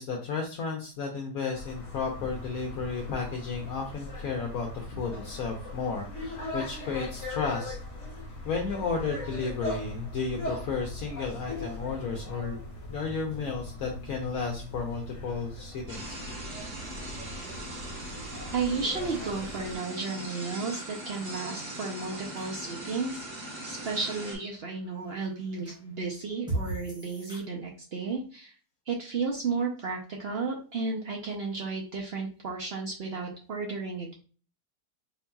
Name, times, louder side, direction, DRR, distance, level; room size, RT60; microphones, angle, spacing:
voice 1, 0.0-7.8 8.4-12.6 12.9-16.2, left 5 dB, 65° left, 1 dB, 1.1 m, -33 dB
sound 1, 1.5-19.8, left 1 dB, 50° left, 1.4 m, -40 dB
sound 2, 15.2-27.4, right 2 dB, 5° right, 0.7 m, -44 dB
sound 3, 15.9-24.4, right 1 dB, 75° right, 2.0 m, -40 dB
voice 2, 18.5-23.2 23.6-28.5 28.9-34.1, right 4 dB, 60° right, 0 dB, 0.6 m, -33 dB
4.5 x 2.8 x 2.2 m, 0.38 s
omnidirectional pair, 1.7 m